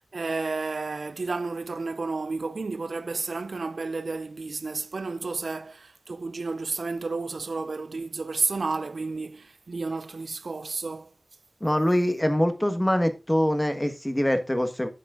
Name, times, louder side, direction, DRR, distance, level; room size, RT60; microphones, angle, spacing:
voice 1, 0.1-11.1, right 3 dB, 85° right, 0.4 m, -31 dB
voice 2, 11.6-14.9, equal, 15° left, 1.4 m, -24 dB
11.5 x 7.4 x 2.5 m
wide cardioid pair, 50°, 0 cm